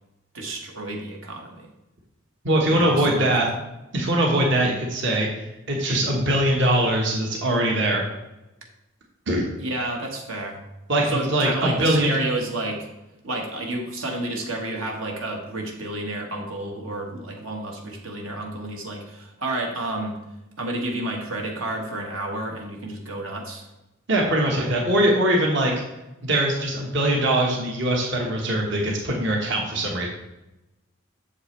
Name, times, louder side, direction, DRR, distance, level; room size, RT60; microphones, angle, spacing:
voice 1, 0.3-1.7 2.7-3.3 9.6-10.6 11.0-12.9 13.2-20.2 20.6-23.7, right 2 dB, 75° right, 0 dB, 1.5 m, -30 dB
voice 2, 2.4-3.5 3.9-8.0 9.3-9.5 10.9-12.1 24.1-25.7 26.2-30.1, right 1 dB, 60° right, -1 dB, 1.4 m, -22 dB
8.2 x 7.0 x 3.3 m, 0.96 s
head